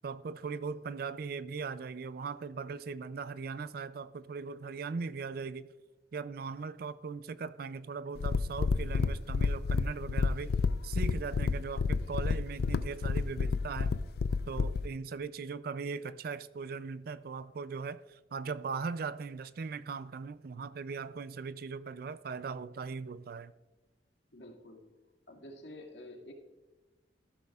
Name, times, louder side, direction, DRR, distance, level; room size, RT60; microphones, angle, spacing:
voice 1, 0.0-5.7 6.1-10.5 10.8-13.9 14.5-23.5, right 5 dB, 55° right, 15 dB, 0.4 m, -39 dB
sound 1, 8.2-14.9, left 4 dB, 60° left, 0.4 m, -30 dB
voice 2, 24.3-24.8 25.3-26.3, left 1 dB, 90° left, 2 dB, 2.1 m, -49 dB
14.5 x 12.0 x 2.4 m, 1.1 s
head